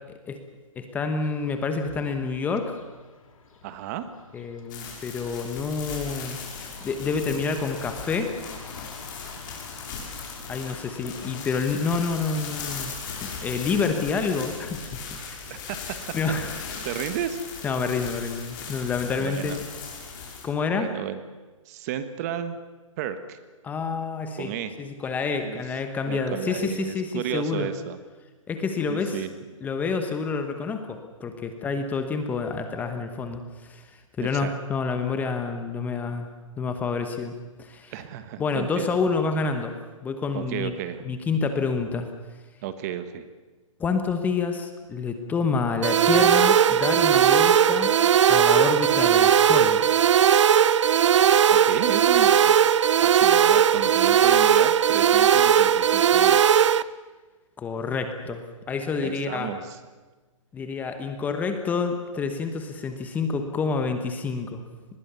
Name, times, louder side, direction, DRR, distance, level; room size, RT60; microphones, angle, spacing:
voice 1, 0.8-2.8 4.3-6.4 6.8-8.3 10.5-15.7 16.1-16.6 17.6-19.6 20.4-20.9 23.6-27.7 28.5-29.2 29.6-36.3 36.6-37.9 38.4-39.7 40.0-40.7 41.0-42.1 43.8-47.9 48.3-49.8 57.6-59.5 60.5-64.6, left 4 dB, 10° left, 7 dB, 1.1 m, -28 dB
sound 1, 1.2-14.6, left 5 dB, 75° left, 3.7 m, -48 dB
voice 2, 3.6-4.1 15.7-15.9 16.5-17.4 19.2-19.6 20.7-21.2 21.7-22.6 23.0-23.4 24.4-24.8 25.4-25.6 26.1-28.0 28.9-29.3 34.2-34.5 37.9-39.0 40.3-41.2 42.6-43.2 51.5-56.7 59.0-59.8, right 10 dB, 30° right, 11 dB, 1.3 m, -33 dB
sound 2, 4.7-20.4, left 5 dB, 35° left, 6.0 m, -38 dB
sound 3, 45.8-56.8, right 9 dB, 60° right, 0.7 m, -18 dB
24.5 x 20.5 x 6.9 m, 1.3 s
hypercardioid pair, 160°, 17 cm